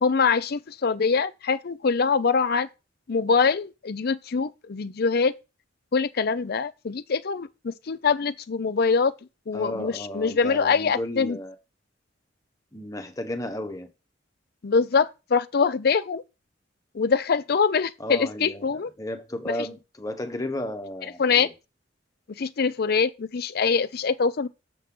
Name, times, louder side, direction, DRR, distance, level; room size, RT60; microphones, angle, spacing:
voice 1, 0.0-2.7 3.1-5.3 5.9-9.1 9.5-11.4 14.6-16.2 16.9-18.9 21.2-21.5 22.4-24.5, left 5 dB, 55° left, 0.5 m, -24 dB
voice 2, 9.5-11.5 12.7-13.9 18.0-21.5, left 1 dB, 20° left, 1.0 m, -33 dB
6.8 x 6.4 x 3.7 m
head